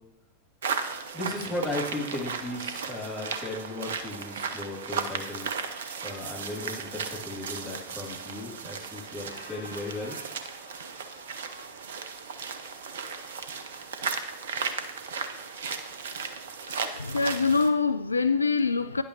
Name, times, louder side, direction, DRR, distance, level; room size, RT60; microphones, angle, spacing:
sound 1, 0.6-17.7, right 5 dB, 60° right, 0.7 m, -35 dB
voice 1, 1.1-5.5 6.0-10.1, left 2 dB, 10° left, 2.6 m, -36 dB
Squeak, 8.3-8.8 9.1-16.7, left 1 dB, 85° right, 1.7 m, -52 dB
voice 2, 16.7-19.0, left 4 dB, 80° left, 0.3 m, -25 dB
10.0 x 8.3 x 3.0 m
figure-of-eight pair, 90°, 0 cm